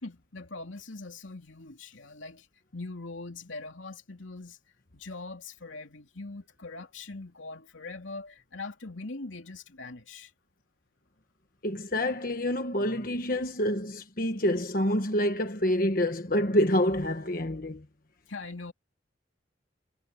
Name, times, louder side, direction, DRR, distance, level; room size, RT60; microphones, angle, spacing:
voice 1, 0.0-2.4 2.7-4.6 4.9-10.3 18.3-18.7, left 3 dB, 85° left, 3.0 m, -42 dB
voice 2, 11.6-17.8, left 1 dB, 45° left, 1.5 m, -27 dB
head